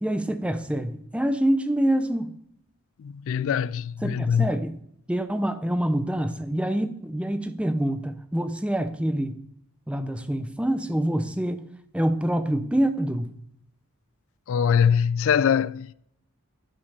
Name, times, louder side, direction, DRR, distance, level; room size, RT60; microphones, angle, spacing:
voice 1, 0.0-2.4 4.0-4.8 5.1-9.4 9.9-11.7 11.9-13.4, right 1 dB, 5° right, 0.6 m, -26 dB
voice 2, 3.0-4.5 14.5-15.9, left 7 dB, 65° left, 0.3 m, -23 dB
12.0 x 5.1 x 5.5 m
head